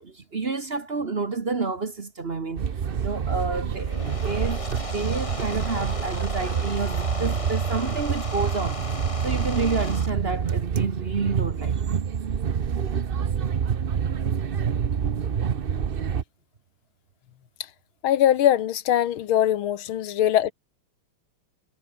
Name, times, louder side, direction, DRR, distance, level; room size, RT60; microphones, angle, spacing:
voice 1, 0.0-2.7 3.0-4.0 4.2-4.6 4.9-8.8 9.2-11.8, right 4 dB, 35° right, 1.4 m, -29 dB
sound 1, 2.6-16.2, right 7 dB, 60° right, 0.5 m, -27 dB
sound 2, 3.7-10.1, left 2 dB, 15° left, 1.6 m, -36 dB
voice 2, 18.0-20.5, left 11 dB, 85° left, 1.9 m, -21 dB
omnidirectional pair, 2.2 m